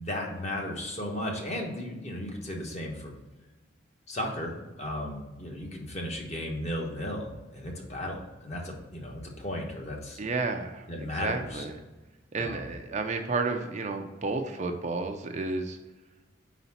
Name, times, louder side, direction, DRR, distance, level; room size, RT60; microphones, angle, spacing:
voice 1, 0.0-3.1 4.1-10.2 10.9-11.6 12.4-12.6, left 1 dB, 35° left, 0 dB, 1.1 m, -35 dB
voice 2, 10.2-11.7 12.3-15.8, right 3 dB, 35° right, 5 dB, 0.5 m, -31 dB
4.9 x 4.1 x 5.7 m, 1.1 s
head